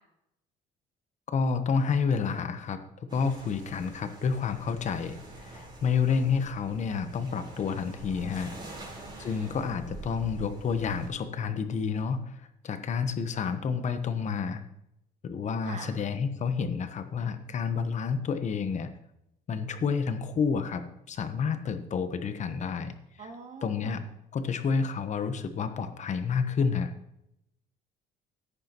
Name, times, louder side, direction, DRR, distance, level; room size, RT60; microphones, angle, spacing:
voice 1, 1.3-8.6 9.2-14.6 15.2-18.9 19.5-23.3 23.6-24.0 24.3-26.9, left 5 dB, 45° left, 10 dB, 1.0 m, -30 dB
sound 1, 3.1-11.1, right 1 dB, 25° right, 4.2 m, -45 dB
voice 2, 8.7-9.5 15.6-15.9 23.2-24.1, right 4 dB, 50° right, 2 dB, 2.3 m, -45 dB
14.5 x 10.0 x 3.0 m, 0.82 s
cardioid pair, 110°, 17 cm